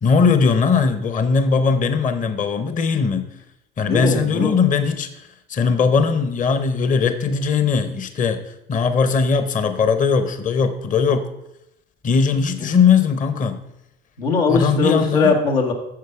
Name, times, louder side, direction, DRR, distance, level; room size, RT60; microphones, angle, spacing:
voice 1, 0.0-3.3 3.8-8.4 8.7-11.3 12.0-13.6 14.5-15.3, left 5 dB, 25° left, 10 dB, 0.8 m, -19 dB
voice 2, 3.9-4.5 14.2-15.7, left 4 dB, 80° left, 0 dB, 1.6 m, -19 dB
9.4 x 6.5 x 4.7 m, 0.83 s
hypercardioid pair, 65°, 30 cm